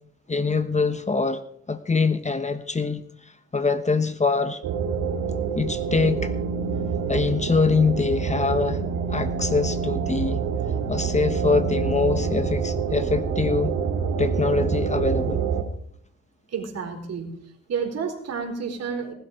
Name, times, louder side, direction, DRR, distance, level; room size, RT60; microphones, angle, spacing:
voice 1, 0.3-1.4 1.7-3.0 3.5-4.6 5.6-6.3 7.1-8.8 9.1-10.4 10.9-13.7 14.2-15.4, left 4 dB, 25° left, 11 dB, 1.2 m, -23 dB
sound 1, 4.6-15.6, right 6 dB, 90° right, 2.3 m, -26 dB
voice 2, 16.5-17.4 17.7-19.1, right 6 dB, 55° right, 3 dB, 4.1 m, -30 dB
19.0 x 12.0 x 5.1 m, 0.67 s
cardioid pair, 90°, 30 cm